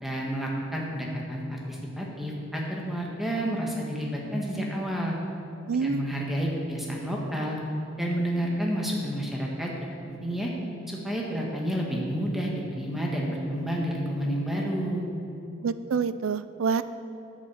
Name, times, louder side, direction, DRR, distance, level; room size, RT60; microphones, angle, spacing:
voice 1, 0.0-5.2 5.7-7.6 8.0-9.7 10.1-10.5 10.9-15.1, equal, ahead, -3 dB, 1.4 m, -30 dB
voice 2, 5.7-6.1 15.6-16.8, right 5 dB, 70° right, 13 dB, 0.4 m, -27 dB
8.3 x 7.4 x 7.1 m, 2.8 s
head